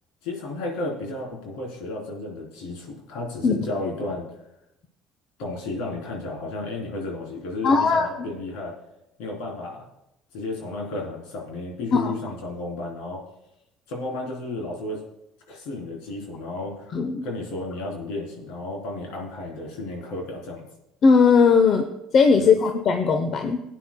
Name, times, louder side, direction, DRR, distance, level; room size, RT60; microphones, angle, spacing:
voice 1, 0.2-4.3 5.4-8.7 9.2-9.9 10.3-13.2 13.9-15.0 15.5-16.9 17.2-20.7 22.4-22.5, left 2 dB, 75° left, -1 dB, 3.6 m, -33 dB
voice 2, 7.6-8.3 11.9-12.1 16.9-17.2 21.0-21.9 22.1-23.6, left 5 dB, 50° left, 6 dB, 0.8 m, -18 dB
18.0 x 9.1 x 2.3 m, 0.86 s
hypercardioid pair, 65°, 0 cm